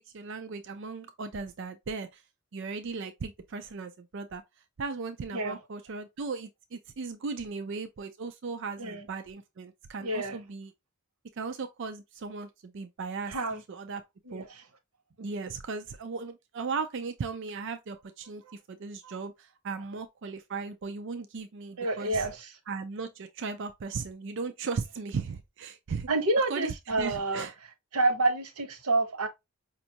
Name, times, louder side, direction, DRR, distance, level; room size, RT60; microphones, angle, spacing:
voice 1, 0.1-2.2 2.5-4.4 4.8-10.7 11.4-13.4 13.7-14.0 14.3-14.5 15.2-22.3 22.7-26.1 26.5-27.5, right 4 dB, 55° right, 0.4 m, -37 dB
voice 2, 10.0-10.4 13.3-13.6 14.3-14.6 18.5-18.6 19.0-19.2 21.8-22.5 26.1-27.5 27.9-29.3, right 2 dB, 90° right, 0.9 m, -28 dB
5.1 x 2.4 x 2.8 m
head